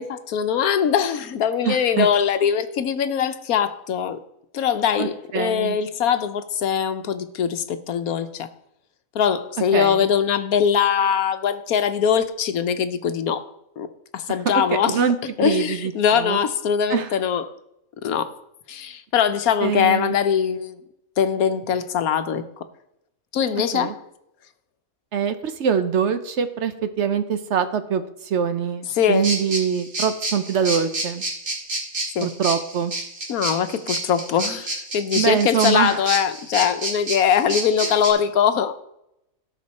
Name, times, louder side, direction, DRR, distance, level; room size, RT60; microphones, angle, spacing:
voice 1, 0.0-4.2 4.5-8.5 9.1-13.4 13.8-15.0 15.4-17.4 18.0-18.3 18.7-20.8 21.2-22.4 23.3-24.0 28.9-29.3 32.1-32.3 33.3-38.8, left 8 dB, 90° left, 10 dB, 1.3 m, -22 dB
voice 2, 1.6-2.1 5.0-5.8 9.7-10.0 14.5-15.2 15.4-16.4 16.9-17.1 19.6-20.2 23.7-23.9 25.1-31.2 32.2-32.9 35.1-36.0 37.8-37.9, right 7 dB, 60° right, 10 dB, 1.0 m, -24 dB
sound 1, 29.2-38.1, right 2 dB, 80° right, 2.9 m, -28 dB
17.5 x 5.9 x 4.2 m, 0.83 s
omnidirectional pair, 1.5 m